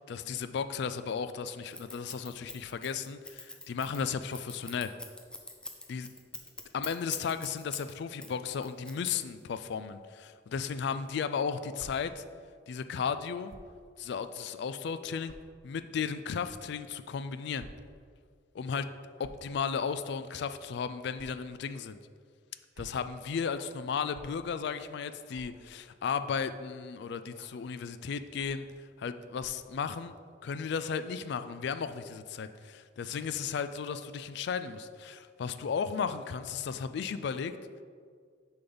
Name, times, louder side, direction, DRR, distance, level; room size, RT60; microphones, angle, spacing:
voice 1, 0.0-4.9 5.9-6.1 6.7-12.2 12.7-13.5 14.0-15.3 15.6-17.7 18.5-18.9 19.2-22.0 22.8-28.7 29.0-30.1 30.4-37.5, left 6 dB, 65° left, 11 dB, 0.3 m, -35 dB
Scissors, 1.7-7.9 8.2-9.5, left 2 dB, 5° left, 0.5 m, -43 dB
sound 1, 11.7-11.9 13.5-13.7 14.4-14.5 15.2-15.4 16.4-16.6 17.6-17.7 18.0-18.2 19.1-19.5 21.1-21.3 22.5-23.0 24.1-24.2 25.3-25.5 26.3-26.5 27.4-27.6 28.4-28.7 29.3-29.6, right 2 dB, 70° right, 0.7 m, -51 dB
6.8 x 5.3 x 3.9 m, 2.1 s
head